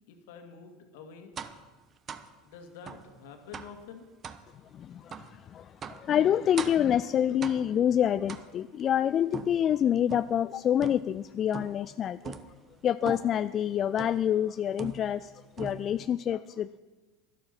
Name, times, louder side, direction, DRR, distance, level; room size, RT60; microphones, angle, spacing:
voice 1, 0.1-1.3 2.4-4.1, left 6 dB, 65° left, 5 dB, 2.0 m, -47 dB
sound 1, 1.4-1.7 2.1-2.3 2.9-3.1 3.5-3.8 4.2-4.5 5.1-5.3 5.8-6.1 6.6-6.9 7.4-7.8 8.3-8.8 9.3-10.4 10.8-11.2 11.5-11.9 12.2-12.6 13.1-13.4 14.0-14.3 14.8-15.3 15.6-16.1, right 6 dB, 35° right, 0.9 m, -41 dB
voice 2, 4.7-5.1 5.5-12.4 12.8-15.3 15.6-16.8, left 10 dB, 40° left, 14 dB, 0.3 m, -27 dB
12.0 x 12.0 x 6.0 m, 1.3 s
figure-of-eight pair, 75°, 0 cm